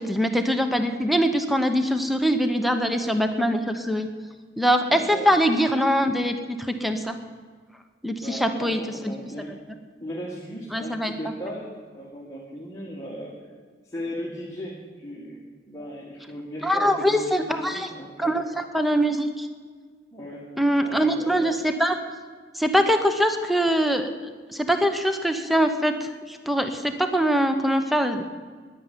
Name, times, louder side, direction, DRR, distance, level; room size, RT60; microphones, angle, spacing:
voice 1, 0.0-4.1 4.6-6.4 6.8-7.2 8.0-8.8 9.0-9.1 10.7-11.1 16.6-17.9 18.2-19.5 20.6-22.0 22.5-24.1 24.5-28.2, equal, ahead, 7 dB, 0.8 m, -23 dB
voice 2, 4.9-5.3 8.2-9.6 10.0-13.4 13.8-15.4 15.7-18.4 20.1-20.5 20.8-21.5, equal, 15° left, -4 dB, 1.9 m, -37 dB
10.5 x 10.0 x 9.6 m, 1.5 s
head